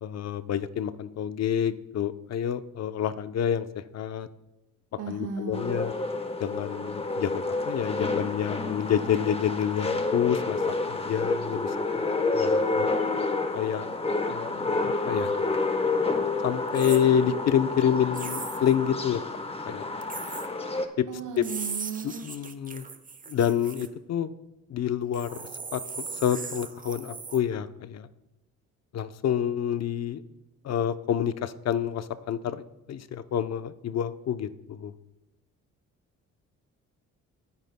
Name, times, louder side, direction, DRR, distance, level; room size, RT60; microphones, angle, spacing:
voice 1, 0.0-4.3 5.1-5.9 6.4-10.6 10.9-12.0 12.3-12.9 13.5-13.9 14.3-15.3 16.4-19.2 19.7-19.9 21.0-21.1 21.4-21.5 22.0-22.9 23.3-24.3 24.7-25.4 25.7-28.1 28.9-30.2 30.6-32.6 32.9-34.9, left 9 dB, 60° left, 12 dB, 0.7 m, -28 dB
voice 2, 5.0-5.8 21.1-22.3, right 6 dB, 90° right, 2 dB, 1.4 m, -35 dB
sound 1, 5.5-20.9, left 3 dB, 20° left, 1.1 m, -29 dB
sound 2, 16.7-17.0 18.1-18.7 20.0-20.5 21.4-23.9 25.1-27.4, right 5 dB, 25° right, 1.0 m, -38 dB
19.5 x 9.7 x 2.2 m, 0.98 s
cardioid pair, 90°, 30 cm